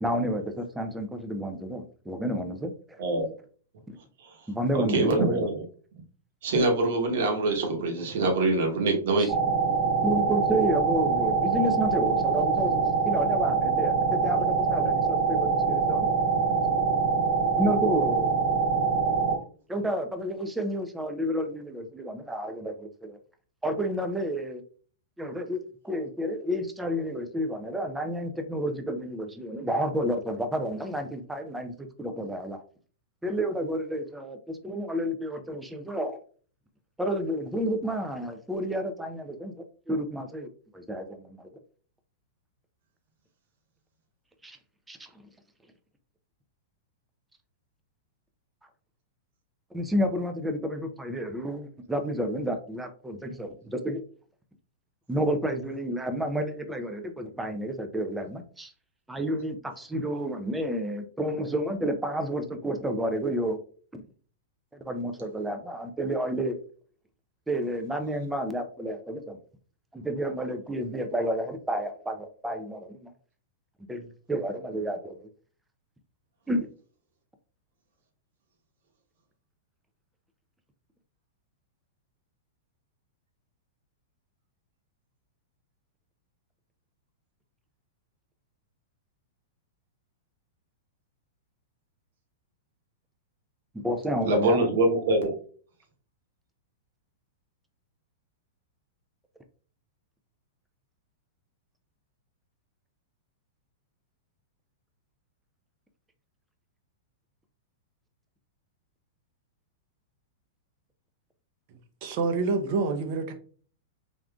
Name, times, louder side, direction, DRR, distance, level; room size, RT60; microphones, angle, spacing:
voice 1, 0.0-3.0 3.9-4.0 4.5-5.5 9.2-9.3 10.0-16.7 17.6-18.3 18.9-19.0 19.7-23.2 23.6-24.6 25.2-32.6 33.2-36.2 37.0-41.5 44.4-44.6 44.9-45.1 49.7-54.0 55.1-58.7 59.1-63.6 63.9-64.0 64.7-66.6 67.5-69.4 69.9-73.1 73.9-75.3 76.5-76.7 93.7-94.6, equal, 5° right, 0.4 m, -30 dB
voice 2, 4.9-5.5 6.4-9.4 94.3-95.3, right 2 dB, 65° right, 1.0 m, -24 dB
sound 1, 9.3-19.4, right 5 dB, 30° right, 1.0 m, -24 dB
voice 3, 112.0-113.3, right 4 dB, 50° right, 0.6 m, -27 dB
3.5 x 2.5 x 2.3 m
hypercardioid pair, 140°, 0 cm